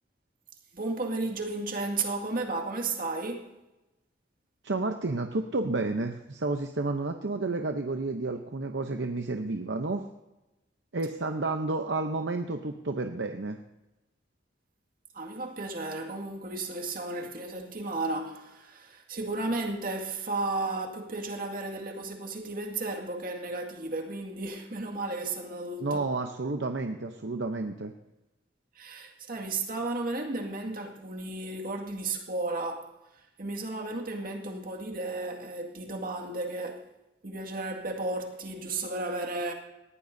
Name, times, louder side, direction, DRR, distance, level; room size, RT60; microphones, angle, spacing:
voice 1, 0.7-3.6 15.1-26.0 28.7-32.9 33.4-36.8 37.2-39.5, right 2 dB, 50° right, 2.1 m, -34 dB
voice 2, 4.6-10.1 10.9-13.6 25.8-27.9, right 3 dB, 70° right, 0.8 m, -31 dB
19.5 x 14.5 x 2.7 m
head